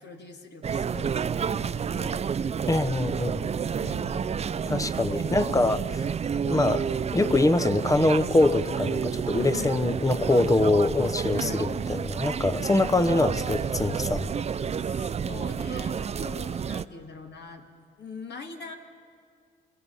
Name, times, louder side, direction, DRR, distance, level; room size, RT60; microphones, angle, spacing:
voice 1, 0.0-2.3 3.7-4.5 9.5-9.8 11.3-11.8 14.8-17.6 18.0-18.7, left 5 dB, 60° left, 4 dB, 2.0 m, -43 dB
sound 1, 0.6-16.8, right 7 dB, 35° right, 0.5 m, -30 dB
voice 2, 2.7-3.5 4.7-6.0 6.4-6.8 7.1-14.3, left 2 dB, 15° left, 13 dB, 0.8 m, -24 dB
26.0 x 22.5 x 5.5 m, 2.1 s
cardioid pair, 90°, 20 cm